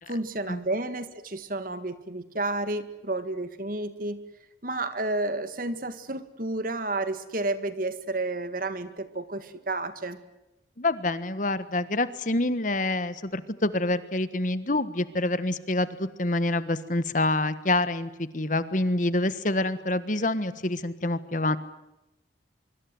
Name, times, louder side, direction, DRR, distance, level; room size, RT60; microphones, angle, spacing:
voice 1, 0.1-4.2 4.6-10.2, right 2 dB, 50° right, 11 dB, 2.0 m, -31 dB
voice 2, 10.8-21.6, left 2 dB, 45° left, 13 dB, 1.4 m, -27 dB
24.5 x 24.5 x 7.8 m, 0.94 s
head